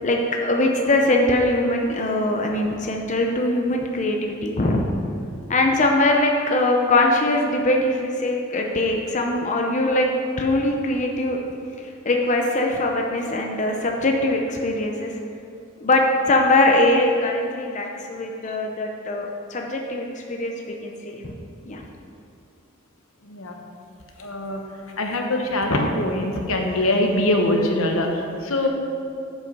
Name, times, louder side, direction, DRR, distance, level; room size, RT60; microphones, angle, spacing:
voice 1, 0.0-4.9 5.5-10.1 10.4-11.4 11.8-15.1 15.8-21.4 21.7-21.8 28.6-28.7, left 2 dB, 35° left, 1 dB, 0.6 m, -22 dB
voice 2, 23.2-23.6 24.2-24.6 25.0-28.7, left 1 dB, 85° left, 2 dB, 1.0 m, -23 dB
7.9 x 5.5 x 5.3 m, 2.6 s
head